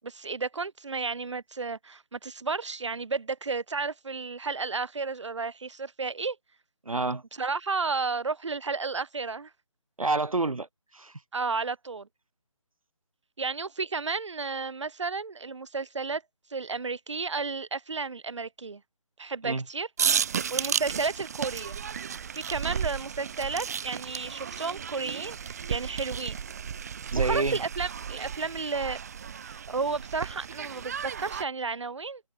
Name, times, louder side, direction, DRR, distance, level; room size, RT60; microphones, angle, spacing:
voice 1, 0.0-6.4 7.4-9.5 11.3-12.1 13.4-16.2 16.5-18.8 19.2-19.9 20.5-21.8 22.3-26.4 27.2-29.0 29.4-32.2, right 4 dB, 60° right, 5.9 m, -32 dB
voice 2, 6.9-7.2 10.0-10.7 10.9-11.2 19.4-19.6 27.1-27.6, right 3 dB, 90° right, 6.9 m, -28 dB
sound 1, 20.0-31.4, right 7 dB, 30° right, 1.6 m, -33 dB
figure-of-eight pair, 170°, 17 cm